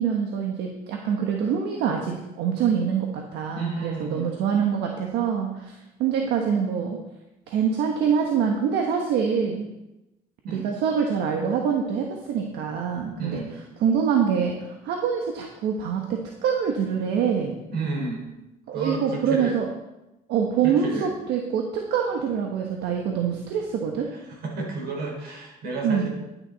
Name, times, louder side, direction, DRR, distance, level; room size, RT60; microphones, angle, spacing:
voice 1, 0.0-3.1 3.3-7.0 7.5-9.7 10.5-16.0 16.4-17.6 18.7-19.7 20.3-24.1 25.8-26.1, right 7 dB, 85° right, 2 dB, 1.4 m, -25 dB
voice 2, 3.5-4.3 10.5-10.7 13.2-13.5 17.7-18.2 18.7-19.6 20.6-21.1 24.3-26.1, right 3 dB, 65° right, -1 dB, 4.4 m, -31 dB
11.5 x 9.6 x 4.1 m, 0.95 s
cardioid pair, 110°, 17 cm